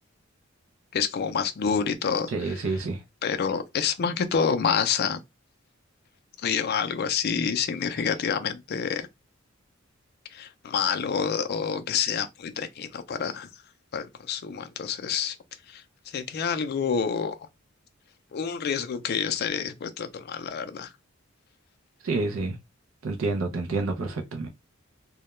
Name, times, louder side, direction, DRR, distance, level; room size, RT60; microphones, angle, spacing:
voice 1, 0.9-2.3 3.2-5.2 6.4-9.1 10.3-13.5 13.9-15.4 15.7-15.8 16.1-17.3 18.3-20.9, left 6 dB, 50° left, 0.4 m, -28 dB
voice 2, 2.3-3.0 7.9-8.1 22.0-22.6 23.0-24.5, right 3 dB, 75° right, 0.5 m, -29 dB
2.2 x 2.1 x 2.9 m
head